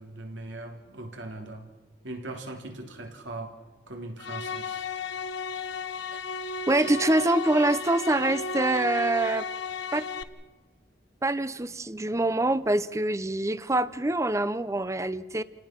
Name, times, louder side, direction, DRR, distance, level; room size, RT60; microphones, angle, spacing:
voice 1, 0.0-1.7 2.0-3.6 3.9-4.9, right 2 dB, 85° right, 3.3 m, -40 dB
sound 1, 4.2-10.2, left 3 dB, 75° left, 1.1 m, -34 dB
voice 2, 6.7-9.5 9.9-10.1 11.2-15.4, right 2 dB, 15° right, 0.7 m, -25 dB
29.5 x 18.0 x 6.0 m
head